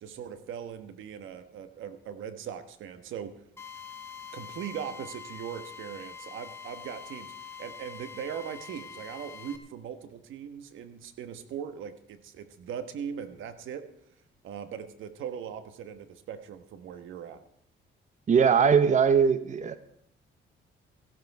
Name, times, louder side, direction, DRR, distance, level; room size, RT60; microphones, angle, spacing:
voice 1, 0.0-3.3 4.3-13.8 14.4-17.4, right 8 dB, 80° right, 10 dB, 1.3 m, -40 dB
Drill, 3.6-9.6, left 7 dB, 10° left, 1.8 m, -44 dB
voice 2, 18.3-19.8, right 6 dB, 35° right, 12 dB, 0.8 m, -21 dB
15.0 x 12.0 x 4.7 m, 0.66 s
cardioid pair, 90°, 20 cm